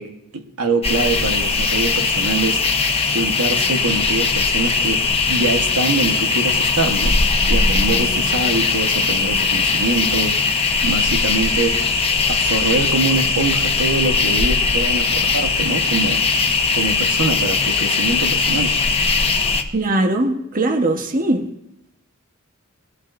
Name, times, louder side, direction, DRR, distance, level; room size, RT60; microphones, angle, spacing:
voice 1, 0.0-2.6 3.1-7.2 7.5-10.6 10.8-11.8 12.3-16.3 16.7-18.7, right 2 dB, 90° right, 5 dB, 1.3 m, -24 dB
sound 1, 0.8-19.6, left 4 dB, 25° left, 1.0 m, -19 dB
voice 2, 19.7-21.5, right 1 dB, 40° right, 5 dB, 1.2 m, -20 dB
20.5 x 16.5 x 2.6 m, 0.83 s
head